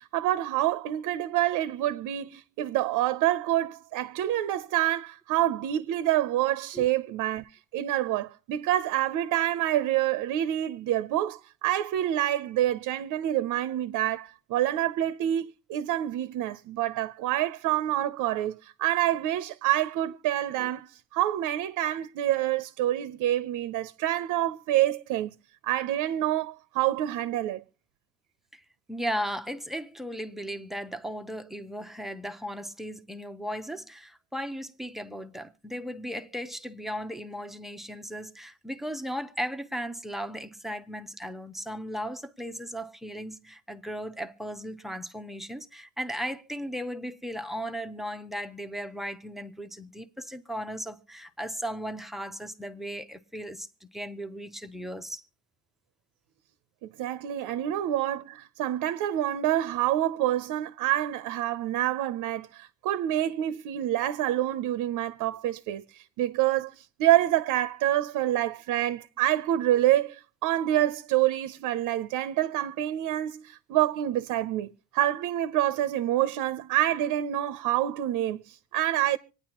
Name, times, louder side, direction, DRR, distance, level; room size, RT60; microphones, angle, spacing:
voice 1, 0.0-25.3 25.6-27.6 57.0-79.2, right 13 dB, 70° right, 0.6 m, -27 dB
voice 2, 28.9-55.2, equal, ahead, 0.6 m, -36 dB
26.0 x 9.5 x 2.9 m
cardioid pair, 145°, 32 cm